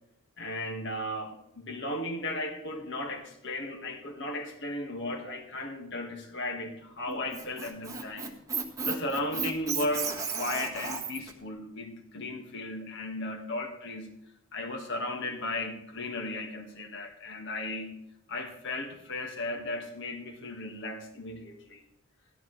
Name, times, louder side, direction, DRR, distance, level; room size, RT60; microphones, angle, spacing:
voice 1, 0.4-8.3 8.8-14.1 14.5-18.0 18.3-21.8, left 1 dB, 60° left, 3 dB, 1.9 m, -35 dB
Squeak, 7.1-11.3, right 5 dB, 15° right, 1.5 m, -34 dB
15.0 x 12.5 x 3.3 m, 0.79 s
head